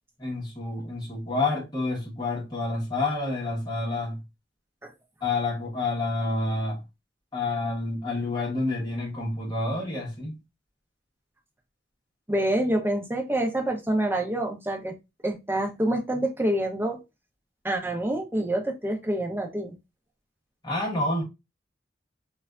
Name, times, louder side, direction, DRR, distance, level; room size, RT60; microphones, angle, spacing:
voice 1, 0.2-4.2 5.2-6.8 7.3-10.3 20.6-21.2, left 2 dB, 25° left, 1.0 m, -28 dB
voice 2, 12.3-14.9 15.2-17.0 17.6-19.7, right 1 dB, 10° right, 0.6 m, -27 dB
3.3 x 2.3 x 2.3 m
head